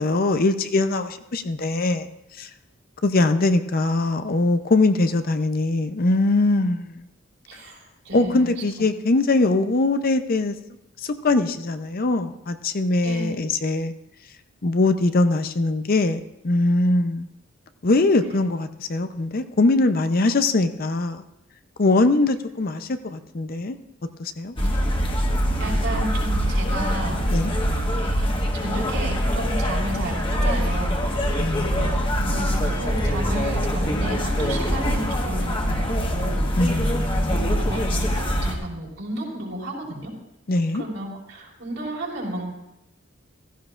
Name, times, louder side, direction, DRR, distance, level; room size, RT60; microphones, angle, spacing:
voice 1, 0.0-2.1 2.4-2.5 3.0-7.0 8.1-10.5 11.0-13.9 14.6-17.3 17.8-21.2 21.8-23.8 24.2-24.6 27.3-27.5 31.4-31.8 36.6-37.5 40.5-40.8, left 2 dB, 45° left, 9 dB, 0.6 m, -22 dB
voice 2, 7.5-7.8 8.0-8.6 13.0-13.2 24.6-24.7 25.6-28.3 28.5-36.9 37.2-40.1 40.7-42.5, right 1 dB, 75° right, -3 dB, 4.8 m, -33 dB
sound 1, 24.6-38.6, equal, 25° left, 1.3 m, -23 dB
15.5 x 15.0 x 2.5 m, 0.88 s
head